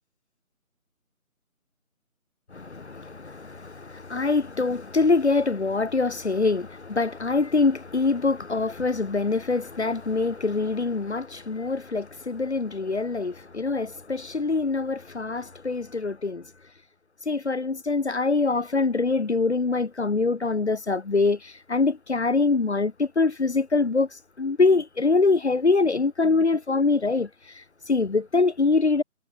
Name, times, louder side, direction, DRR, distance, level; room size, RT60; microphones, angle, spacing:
voice 1, 2.5-16.4 17.3-24.1 24.4-29.0, left 3 dB, 50° left, 1.2 m, -24 dB
figure-of-eight pair, 160°, 43 cm